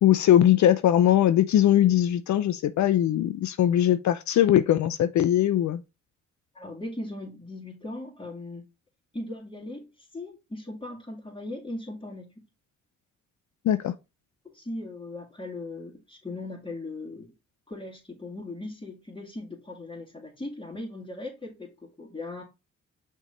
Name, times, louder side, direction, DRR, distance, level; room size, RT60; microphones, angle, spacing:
voice 1, 0.0-5.8 13.6-13.9, left 11 dB, 65° left, 0.5 m, -21 dB
voice 2, 6.5-8.6 9.1-12.5 14.5-17.3 17.7-22.4, left 2 dB, 15° left, 2.6 m, -38 dB
5.9 x 4.6 x 3.8 m
supercardioid pair, 60°, 31 cm